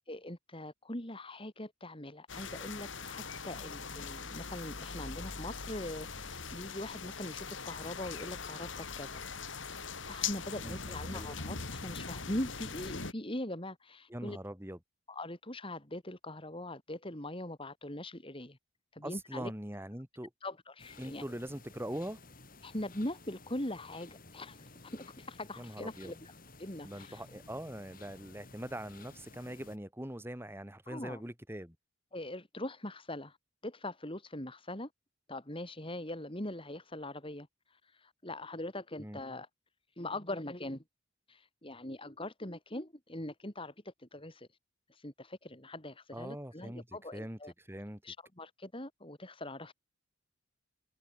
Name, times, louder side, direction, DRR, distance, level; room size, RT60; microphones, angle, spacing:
voice 1, 0.1-9.2 10.1-14.4 15.1-18.6 18.9-19.5 20.4-21.2 22.6-27.3 30.9-31.2 32.1-33.4 33.6-34.9 35.3-39.5 40.0-40.8 41.3-44.5 44.9-47.5 48.0-49.7, left 1 dB, 25° left, 3.8 m, -42 dB
sound 1, 2.3-13.1, left 5 dB, 65° left, 2.6 m, -41 dB
voice 2, 14.1-14.8 19.0-20.3 21.0-22.2 25.6-26.1 26.8-31.8 39.0-39.2 46.1-47.4 47.7-48.0, right 1 dB, 10° right, 2.9 m, -42 dB
sound 2, 20.8-29.8, left 3 dB, 45° left, 7.0 m, -55 dB
head